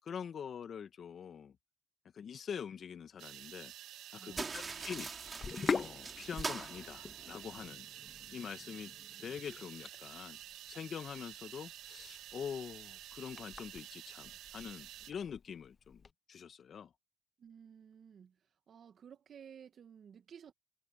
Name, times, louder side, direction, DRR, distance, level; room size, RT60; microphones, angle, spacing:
voice 1, 0.0-1.6 2.1-3.7 4.1-5.1 5.7-7.9 8.3-8.9 9.2-10.4 10.7-16.0 16.3-16.9, left 7 dB, 55° left, 2.1 m, -44 dB
sound 1, 3.2-15.1, right 13 dB, 80° right, 0.7 m, -51 dB
voice 2, 4.2-4.9 17.4-18.4 18.7-20.5, right 7 dB, 55° right, 1.9 m, -55 dB
sound 2, 4.3-7.7, right 4 dB, 30° right, 3.0 m, -43 dB
Sink (filling or washing), 5.3-16.1, left 5 dB, 40° left, 0.8 m, -44 dB
supercardioid pair, 75°, 0 cm